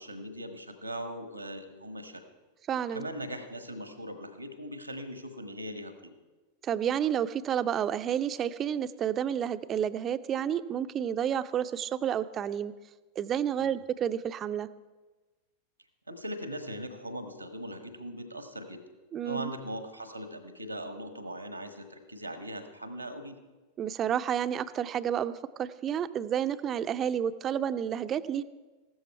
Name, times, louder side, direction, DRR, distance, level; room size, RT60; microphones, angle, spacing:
voice 1, 0.0-2.2 2.9-6.1 13.6-13.7 16.1-18.8 19.2-23.4, equal, 90° right, 9 dB, 1.2 m, -40 dB
voice 2, 2.7-3.1 6.6-12.7 13.2-14.7 19.1-19.5 23.8-28.4, right 9 dB, 30° right, 13 dB, 0.5 m, -30 dB
15.0 x 12.5 x 4.5 m, 1.2 s
figure-of-eight pair, 90°, 0 cm